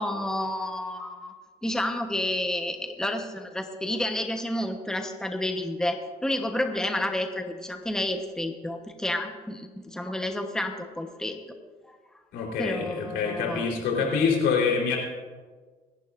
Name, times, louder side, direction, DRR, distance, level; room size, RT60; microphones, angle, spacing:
voice 1, 0.0-1.3 1.6-11.6 11.9-12.0 12.6-13.7, left 1 dB, 5° left, 4 dB, 1.1 m, -30 dB
voice 2, 12.3-15.0, left 5 dB, 90° left, -1 dB, 4.0 m, -25 dB
26.5 x 11.0 x 2.6 m, 1.4 s
cardioid pair, 110°, 17 cm